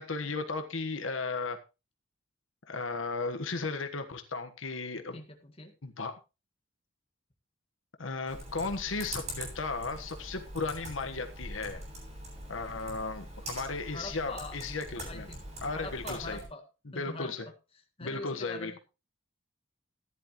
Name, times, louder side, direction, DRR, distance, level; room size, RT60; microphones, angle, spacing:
voice 1, 0.0-1.6 2.7-5.2 5.8-6.1 8.0-11.8 12.5-15.3 15.6-16.4 16.9-17.5 18.0-18.8, left 3 dB, 85° left, 7 dB, 1.4 m, -35 dB
voice 2, 5.1-5.7 13.8-14.6 15.1-16.6 16.9-17.3 18.0-18.8, left 2 dB, 30° left, 4 dB, 1.7 m, -43 dB
Computer keyboard, 8.3-16.5, right 1 dB, 35° right, 7.7 m, -43 dB
14.5 x 10.5 x 3.1 m, 0.30 s
head